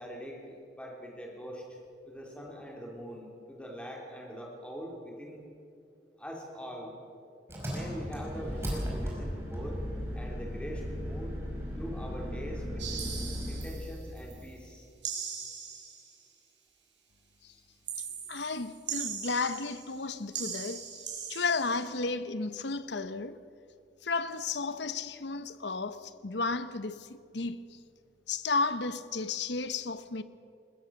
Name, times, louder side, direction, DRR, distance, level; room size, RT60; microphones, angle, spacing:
voice 1, 0.0-1.8 2.1-5.4 6.2-6.9 7.7-9.8 10.1-11.3 11.8-13.1 13.5-14.9 15.5-15.6 17.5-17.6, equal, 5° left, 3.5 m, -43 dB
Engine, 7.5-13.8, equal, 15° right, 5.4 m, -36 dB
sound 1, 12.8-14.5 15.0-16.2 17.9-20.0 20.3-21.9, right 7 dB, 80° right, 4.8 m, -40 dB
voice 2, 18.0-21.0 21.3-23.4 24.0-27.8 28.3-30.2, left 4 dB, 70° left, 0.9 m, -33 dB
21.0 x 20.0 x 6.5 m
head